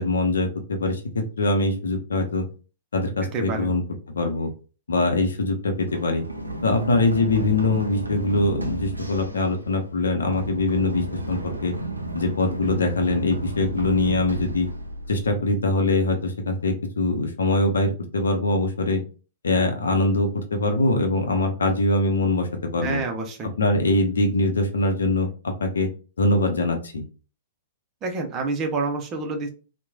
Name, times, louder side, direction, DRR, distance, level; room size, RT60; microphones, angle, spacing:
voice 1, 0.0-2.5 2.9-3.8 4.1-4.5 4.9-6.2 6.6-11.7 12.1-14.7 15.1-19.0 19.4-23.0 23.4-25.9 26.2-27.0, left 2 dB, 70° left, 5 dB, 0.6 m, -23 dB
voice 2, 3.3-3.7 22.8-23.5 28.0-29.5, right 3 dB, 30° right, 4 dB, 0.7 m, -28 dB
Run, 5.9-15.6, right 2 dB, 85° right, 0.5 m, -33 dB
3.0 x 2.1 x 2.3 m, 0.35 s
figure-of-eight pair, 105°, 0 cm